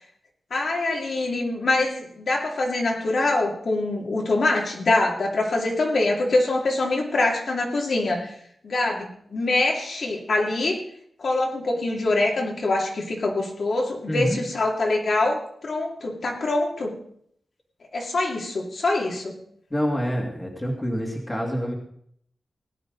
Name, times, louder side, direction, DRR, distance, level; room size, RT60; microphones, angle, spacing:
voice 1, 0.5-8.3 8.6-10.8 11.2-16.9 17.9-19.4, left 2 dB, 60° left, -1 dB, 2.6 m, -24 dB
voice 2, 14.1-14.4 19.7-21.7, equal, 15° left, 0 dB, 2.2 m, -26 dB
17.5 x 11.5 x 4.0 m, 0.67 s
wide cardioid pair, 180°, 0 cm